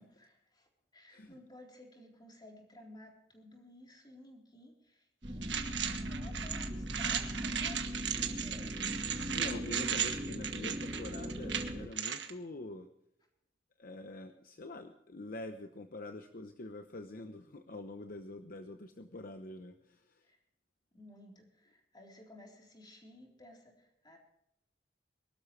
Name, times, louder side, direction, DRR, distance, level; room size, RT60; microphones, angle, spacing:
voice 1, 0.0-8.8 20.2-20.4 20.9-24.2, left 1 dB, 25° left, 0 dB, 3.8 m, -56 dB
voice 2, 1.1-1.4 9.2-12.9 13.8-20.3, left 2 dB, 55° left, 7 dB, 0.9 m, -45 dB
sound 1, 5.2-11.9, equal, 30° right, 1.7 m, -40 dB
sound 2, 5.4-12.3, right 8 dB, 85° right, 1.5 m, -36 dB
23.5 x 12.5 x 3.2 m, 0.79 s
head